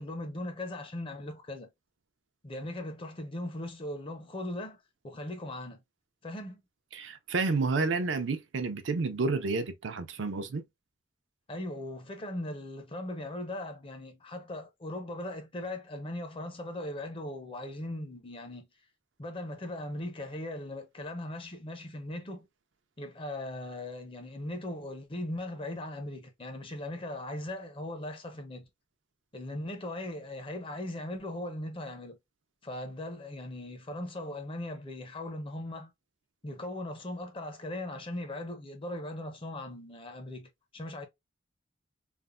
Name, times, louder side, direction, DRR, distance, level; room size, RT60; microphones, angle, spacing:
voice 1, 0.0-1.7 2.4-4.8 5.0-5.8 6.2-6.6 11.5-18.7 19.2-22.5 23.0-28.7 29.3-32.2 32.6-35.9 36.4-41.1, left 1 dB, 30° left, 0.6 m, -39 dB
voice 2, 6.9-10.6, right 3 dB, 80° right, 0.5 m, -30 dB
3.3 x 2.1 x 2.4 m
head